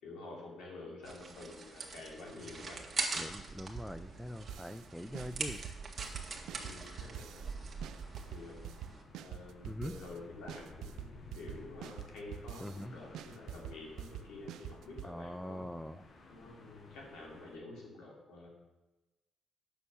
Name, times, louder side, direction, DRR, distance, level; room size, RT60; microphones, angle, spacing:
voice 1, 0.0-3.2 6.6-7.4 8.3-8.7 9.2-15.7 16.3-18.5, left 2 dB, 85° left, -2 dB, 3.3 m, -49 dB
sound 1, 1.0-9.0, right 4 dB, 35° right, 1.8 m, -42 dB
sound 2, 3.1-17.6, left 2 dB, 50° left, 1.3 m, -57 dB
voice 2, 3.2-5.6 9.7-9.9 12.6-13.0 15.0-16.0, equal, 5° left, 10 dB, 0.4 m, -43 dB
sound 3, 4.5-4.9 5.1-7.5 7.8-10.2 10.5-12.8 13.1-15.1, right 10 dB, 85° right, 0.4 m, -46 dB
9.0 x 6.9 x 6.5 m, 1.1 s
cardioid pair, 90°, 0 cm